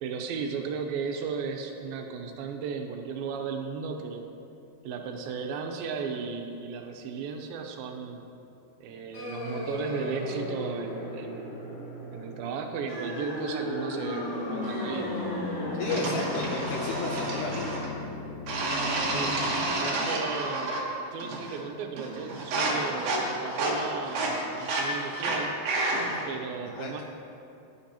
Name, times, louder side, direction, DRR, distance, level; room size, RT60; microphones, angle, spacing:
voice 1, 0.0-4.3 4.8-8.2 8.8-11.6 12.1-15.2 16.0-16.4 19.0-20.8 21.1-25.6 26.3-27.0, right 5 dB, 80° right, 4 dB, 2.6 m, -35 dB
sound 1, 9.1-19.6, left 1 dB, 65° left, 3.4 m, -35 dB
voice 2, 15.8-17.7 26.6-27.0, left 4 dB, 80° left, 0 dB, 1.8 m, -34 dB
sound 2, 15.9-17.9 18.5-20.9 21.2-21.7 22.0-26.3, right 2 dB, 55° right, 2.3 m, -30 dB
16.0 x 10.0 x 2.9 m, 2.7 s
omnidirectional pair, 4.2 m